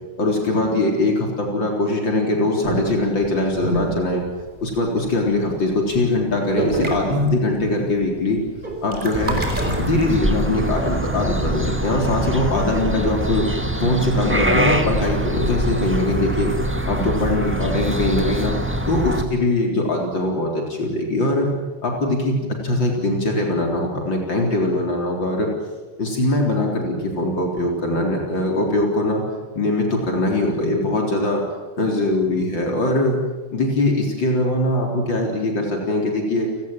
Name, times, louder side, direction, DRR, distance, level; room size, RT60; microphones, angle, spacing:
voice 1, 0.2-4.2 4.6-8.4 8.8-9.4 9.8-13.5 13.8-16.5 16.9-18.5 18.9-21.5 21.8-25.5 26.0-29.2 29.5-31.4 31.8-33.2 33.5-36.5, left 2 dB, 65° left, 1 dB, 4.6 m, -21 dB
sound 1, 2.6-4.9 5.2-5.5 5.8-6.0 6.2-6.3 6.6-7.7 8.0-10.4, right 1 dB, 20° right, 4.5 m, -27 dB
sound 2, 9.1-19.2, right 1 dB, 5° right, 1.5 m, -24 dB
30.0 x 18.0 x 9.2 m, 1.3 s
omnidirectional pair, 2.2 m